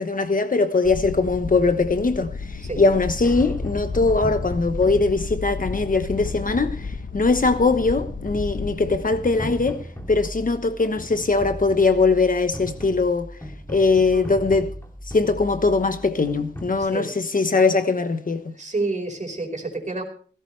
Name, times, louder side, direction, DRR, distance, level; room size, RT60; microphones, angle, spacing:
voice 1, 0.0-9.8 10.1-13.3 13.7-14.7 15.1-18.5, left 3 dB, 50° left, 1.1 m, -21 dB
sound 1, 0.8-9.0, left 4 dB, 75° left, 1.1 m, -33 dB
sound 2, 3.2-16.9, equal, 15° left, 3.0 m, -37 dB
voice 2, 16.8-17.1 18.5-20.0, right 3 dB, 40° right, 4.9 m, -29 dB
17.0 x 16.0 x 3.3 m
wide cardioid pair, 90°, 18 cm